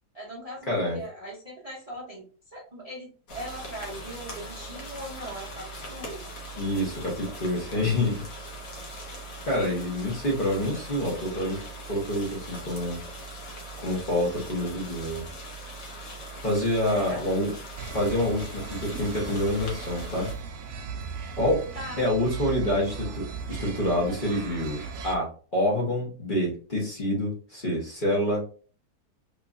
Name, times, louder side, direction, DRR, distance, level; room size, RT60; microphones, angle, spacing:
voice 1, 0.1-2.3 2.5-6.3 16.9-17.2 21.7-22.1, right 1 dB, 30° right, -4 dB, 0.8 m, -40 dB
voice 2, 0.7-1.0 6.6-8.2 9.5-11.6 11.9-13.0 13.8-15.2 16.4-17.5 17.9-20.3 21.4-21.7 22.0-28.4, left 1 dB, 35° left, -4 dB, 1.3 m, -27 dB
sound 1, 3.3-20.3, right 1 dB, 60° left, 1.3 m, -40 dB
sound 2, 17.8-25.2, right 5 dB, 70° right, 0.8 m, -37 dB
3.6 x 2.9 x 2.5 m, 0.39 s
omnidirectional pair, 1.7 m